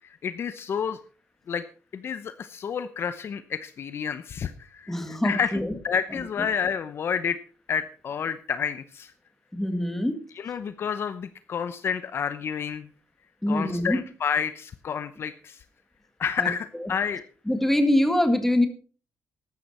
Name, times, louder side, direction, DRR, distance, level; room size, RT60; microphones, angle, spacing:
voice 1, 0.2-1.0 1.5-1.6 1.9-5.5 5.8-7.4 7.7-9.1 10.4-12.9 13.5-15.6 16.2-17.2, left 7 dB, 45° left, 12 dB, 0.8 m, -29 dB
voice 2, 4.9-5.8 6.1-6.5 9.5-10.2 13.4-14.0 16.4-16.9 17.5-18.7, left 1 dB, 5° left, 7 dB, 1.9 m, -24 dB
14.5 x 12.0 x 4.3 m, 0.39 s
cardioid pair, 145°, 6 cm